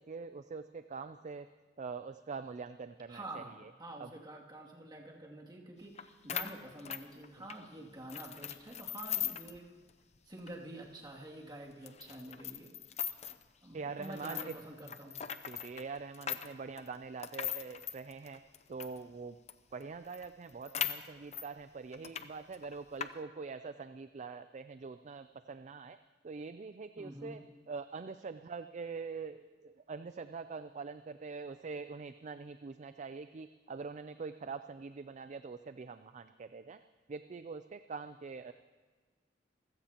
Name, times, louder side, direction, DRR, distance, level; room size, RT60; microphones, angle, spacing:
voice 1, 0.0-1.5 1.8-3.7 4.0-4.1 7.4-7.5 13.7-14.5 14.9-15.0 15.5-18.4 18.7-19.4 19.7-26.0 26.2-36.8 37.1-38.5, right 4 dB, 40° right, 10 dB, 0.4 m, -44 dB
voice 2, 3.1-9.7 10.3-12.7 13.6-15.1 27.0-27.4, right 1 dB, 25° right, -3 dB, 2.5 m, -48 dB
sound 1, 6.0-6.1 6.3-7.6 8.1-9.6 9.9-10.0 10.4-10.5 11.1-11.2 11.9-13.4 14.0-19.0 19.5-19.6 19.8-19.9 20.1-21.5 21.9-22.3 22.5-23.1, left 9 dB, 40° left, 0.6 m, -39 dB
27.0 x 16.0 x 2.9 m, 1.4 s
head